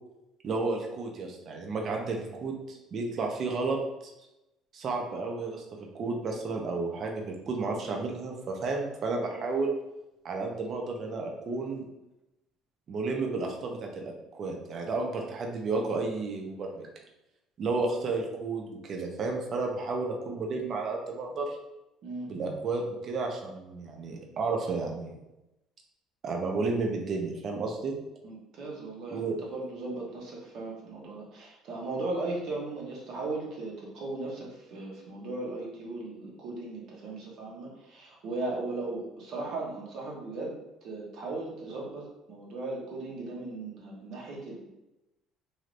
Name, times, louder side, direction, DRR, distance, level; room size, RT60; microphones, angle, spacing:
voice 1, 0.4-3.8 4.0-4.1 4.7-5.6 5.9-9.7 10.2-11.9 12.9-16.9 17.6-21.6 22.3-25.2 26.2-27.9 29.1-29.4, right 3 dB, 45° right, 1 dB, 0.6 m, -32 dB
voice 2, 28.2-40.5 40.8-44.7, right 2 dB, 60° right, -3 dB, 1.0 m, -37 dB
3.3 x 2.7 x 2.5 m, 0.95 s
cardioid pair, 110°, 0 cm